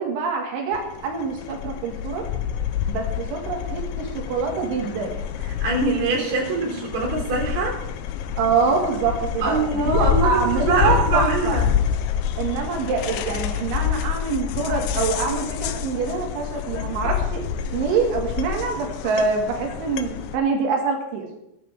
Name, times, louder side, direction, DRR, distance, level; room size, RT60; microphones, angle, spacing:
voice 1, 0.0-2.3 2.9-5.2 8.4-11.6 12.4-17.4 17.7-21.3, right 5 dB, 85° right, 1 dB, 4.5 m, -25 dB
sound 1, 0.7-20.4, left 9 dB, 85° left, 3.0 m, -27 dB
voice 2, 5.4-7.8 9.4-11.7, right 3 dB, 45° right, -2 dB, 3.9 m, -23 dB
19.0 x 9.9 x 3.6 m, 0.84 s
omnidirectional pair, 5.3 m